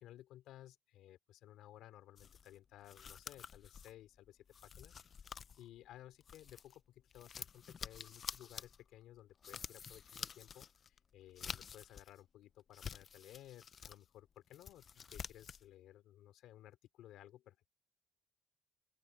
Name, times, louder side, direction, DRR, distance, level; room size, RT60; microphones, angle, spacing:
voice 1, 0.0-4.9 5.6-17.7, left 13 dB, 85° left, 3.3 m, -57 dB
sound 1, 2.2-6.8 7.1-12.2 12.6-14.0 14.4-15.7, left 7 dB, 40° left, 0.6 m, -49 dB
open air
cardioid pair, 125°, 0 cm